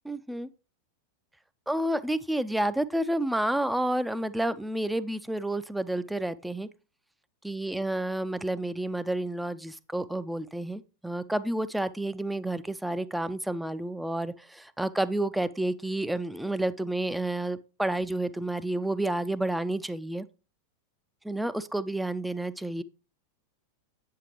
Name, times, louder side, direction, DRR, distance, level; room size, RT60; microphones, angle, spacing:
voice 1, 0.1-0.5 1.7-6.7 7.4-20.3 21.2-22.8, right 1 dB, 5° right, 0.4 m, -30 dB
8.2 x 7.6 x 2.9 m
figure-of-eight pair, 90°, 0 cm